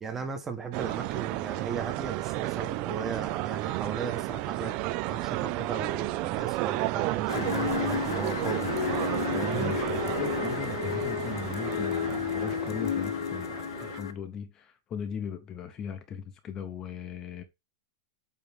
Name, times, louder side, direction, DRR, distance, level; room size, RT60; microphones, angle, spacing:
voice 1, 0.0-4.7 5.1-8.7 9.3-9.7, right 5 dB, 15° right, 1.1 m, -36 dB
sound 1, 0.7-14.0, right 18 dB, 40° right, 0.4 m, -32 dB
sound 2, 6.3-9.1, right 11 dB, 55° right, 3.8 m, -54 dB
sound 3, 7.3-14.1, left 9 dB, 85° left, 0.9 m, -32 dB
voice 2, 9.5-17.4, left 7 dB, 25° left, 0.7 m, -38 dB
8.8 x 3.2 x 3.5 m
supercardioid pair, 150°, 2 cm